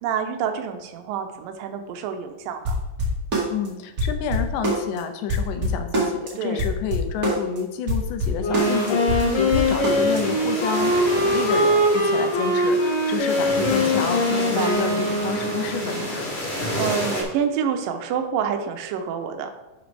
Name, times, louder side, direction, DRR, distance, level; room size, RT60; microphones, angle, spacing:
voice 1, 0.0-2.8 6.4-6.6 9.2-9.5 14.3-14.7 16.8-19.5, right 7 dB, 75° right, 5 dB, 2.4 m, -28 dB
sound 1, 2.6-3.7 4.0-5.0 5.3-6.3 6.6-7.6 7.9-10.2, right 1 dB, 35° right, 1.9 m, -24 dB
voice 2, 3.5-16.3, left 8 dB, 75° left, 7 dB, 2.2 m, -29 dB
Wind instrument woodwind instrument, 8.4-16.2, equal, 50° left, 2.0 m, -22 dB
sound 2, 8.6-17.2, left 1 dB, 25° left, 1.8 m, -30 dB
11.0 x 6.0 x 3.3 m, 1.1 s
omnidirectional pair, 4.2 m